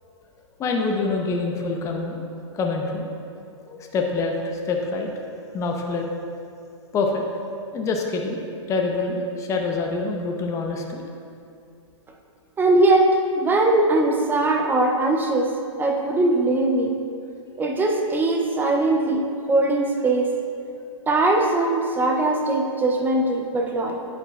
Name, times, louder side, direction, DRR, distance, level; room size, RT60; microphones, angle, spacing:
voice 1, 0.6-2.2 2.5-3.1 3.7-5.1 5.4-6.1 6.9-7.3 7.7-11.0, left 3 dB, 20° left, 2 dB, 0.8 m, -26 dB
voice 2, 12.6-17.0 17.6-20.4 21.1-24.1, right 2 dB, 10° right, 2 dB, 0.5 m, -21 dB
9.6 x 8.5 x 2.4 m, 2.5 s
hypercardioid pair, 130°, 16 cm